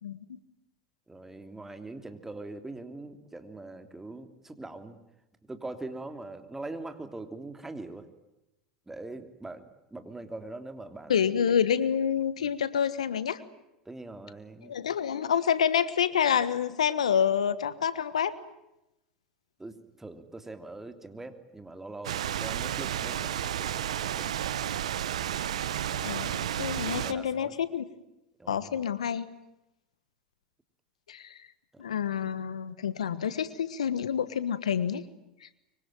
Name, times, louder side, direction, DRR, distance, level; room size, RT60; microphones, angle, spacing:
voice 1, 1.1-5.0 5.4-8.1 8.9-9.6 9.9-11.5 13.8-14.8 19.6-24.4 26.9-27.6 28.4-28.8 31.7-31.8, right 2 dB, 10° right, 8 dB, 3.1 m, -42 dB
voice 2, 11.1-13.4 14.6-18.3 25.9-27.8 28.5-29.2 31.1-31.5 31.8-35.0, left 8 dB, 85° left, 16 dB, 1.4 m, -28 dB
sound 1, 22.0-27.1, right 10 dB, 80° right, 1.1 m, -32 dB
24.5 x 24.0 x 9.1 m, 0.91 s
hypercardioid pair, 85°, 3 cm